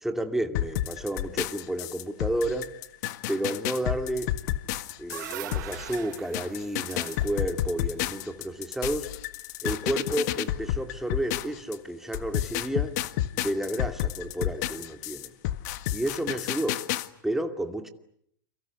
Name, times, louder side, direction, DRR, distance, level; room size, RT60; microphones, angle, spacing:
voice 1, 0.0-2.7 3.3-4.3 5.0-9.1 9.6-13.0 13.4-15.3 15.9-16.8 17.2-17.9, right 1 dB, 5° right, 6 dB, 2.5 m, -31 dB
sound 1, 0.5-11.8 12.1-17.1, left 14 dB, 60° left, 1.7 m, -31 dB
sound 2, 4.6-8.9, right 15 dB, 65° right, 1.8 m, -43 dB
29.5 x 24.0 x 8.4 m, 0.70 s
hypercardioid pair, 105°, 11 cm